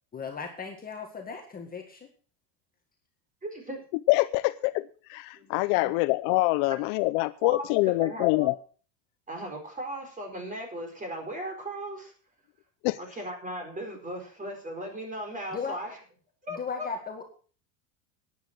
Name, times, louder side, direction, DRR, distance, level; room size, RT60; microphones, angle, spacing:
voice 1, 0.1-2.1 15.5-15.8 16.6-17.3, left 5 dB, 20° left, 2 dB, 1.8 m, -36 dB
voice 2, 3.4-3.8 5.4-5.5 5.8-5.9 6.6-6.8 7.4-8.5 9.3-12.1 13.0-16.0 16.4-16.9, right 1 dB, 15° right, 3 dB, 4.5 m, -37 dB
voice 3, 4.1-4.8 5.1-8.5 12.8-13.0, left 21 dB, 60° left, 14 dB, 0.7 m, -25 dB
12.0 x 10.0 x 6.0 m, 0.40 s
cardioid pair, 150°, 49 cm